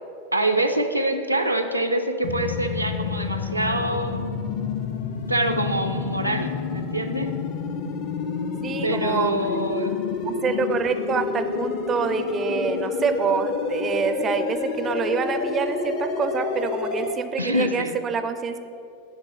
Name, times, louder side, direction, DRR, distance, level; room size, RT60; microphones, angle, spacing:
voice 1, 0.3-4.3 5.3-7.3 8.8-10.0 17.4-18.0, right 1 dB, 90° right, 5 dB, 0.5 m, -25 dB
sound 1, 2.2-17.1, left 5 dB, 45° left, 0.6 m, -29 dB
voice 2, 8.6-9.4 10.3-18.6, right 6 dB, 25° right, 10 dB, 0.4 m, -26 dB
8.0 x 3.9 x 6.8 m, 2.5 s
figure-of-eight pair, 90°, 0 cm